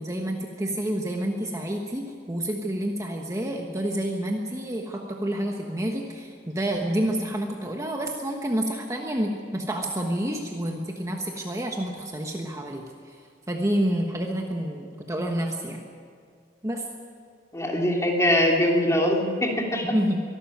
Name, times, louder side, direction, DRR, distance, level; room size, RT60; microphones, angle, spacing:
voice 1, 0.0-15.8 16.6-16.9 19.8-20.2, right 1 dB, 20° right, 1 dB, 1.3 m, -29 dB
voice 2, 17.5-19.8, left 1 dB, 15° left, 0 dB, 3.0 m, -22 dB
23.5 x 12.5 x 9.3 m, 2.1 s
head